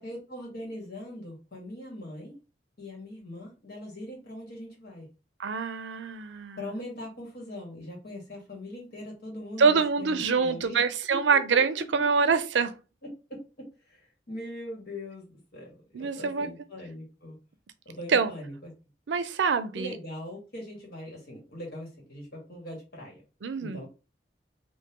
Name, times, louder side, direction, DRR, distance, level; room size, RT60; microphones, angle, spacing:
voice 1, 0.0-2.3 2.8-5.1 6.6-10.8 11.5-11.6 13.3-14.0 14.3-17.4 17.8-18.7 19.7-23.2 23.6-23.9, left 1 dB, 60° left, 1.6 m, -41 dB
voice 2, 5.4-6.6 9.6-12.7 15.9-16.5 18.1-18.3 19.1-20.0 23.4-23.8, right 5 dB, 80° right, 0.5 m, -25 dB
3.6 x 2.6 x 2.9 m
head